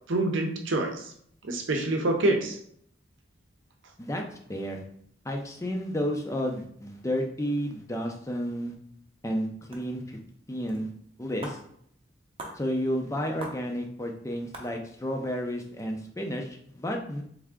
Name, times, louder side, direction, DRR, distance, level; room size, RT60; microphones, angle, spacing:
voice 1, 0.1-1.0 1.4-2.6, right 2 dB, 80° right, 4 dB, 0.7 m, -26 dB
voice 2, 4.0-4.8 5.2-8.7 9.2-10.2 10.5-10.9 11.2-11.6 12.6-17.2, equal, 15° left, 2 dB, 0.5 m, -31 dB
sound 1, 9.7-9.8 10.7-10.8 11.0-11.1 11.4-11.6 12.4-12.6 13.4-13.6 14.1-14.2 14.5-14.7, right 1 dB, 30° right, 0.7 m, -39 dB
3.6 x 3.3 x 3.6 m, 0.66 s
head